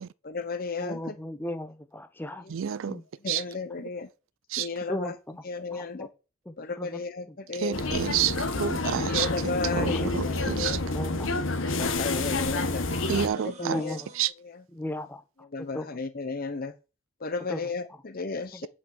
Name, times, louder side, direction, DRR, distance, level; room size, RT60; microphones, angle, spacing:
voice 1, 0.2-1.1 3.2-4.1 4.6-5.1 5.4-6.1 6.6-7.9 9.0-10.8 11.8-12.9 13.3-14.0 14.4-14.6 15.5-16.7 17.2-18.7, left 4 dB, 50° left, 0.8 m, -33 dB
voice 2, 0.8-2.5 2.9-3.3 4.9-5.1 5.7-6.1 6.5-7.0 7.3-7.4 9.7-10.0 10.9-11.5 11.8-12.4 13.6-14.1 14.7-16.0 17.5-17.6 18.5-18.6, left 1 dB, 10° left, 0.8 m, -36 dB
voice 3, 2.5-3.0 3.3-3.4 4.5-4.7 7.6-9.3 9.8-10.8 13.1-13.8 14.2-14.3, right 9 dB, 85° right, 0.4 m, -29 dB
sound 1, 7.7-13.3, left 2 dB, 85° left, 1.3 m, -29 dB
sound 2, 9.0-14.3, equal, 35° right, 2.3 m, -49 dB
8.6 x 5.4 x 7.8 m
head